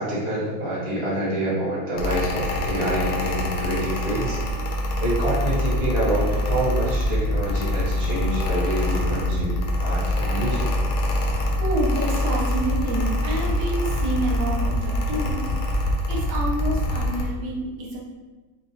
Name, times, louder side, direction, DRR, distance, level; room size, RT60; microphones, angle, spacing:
voice 1, 0.0-4.4 5.0-10.7, right 1 dB, 35° right, -6 dB, 1.5 m, -27 dB
Mechanical fan, 2.0-17.3, left 1 dB, 85° left, 0.8 m, -24 dB
voice 2, 11.4-15.4 16.1-18.0, right 1 dB, 70° right, -3 dB, 1.5 m, -28 dB
4.3 x 2.3 x 4.2 m, 1.2 s
omnidirectional pair, 2.4 m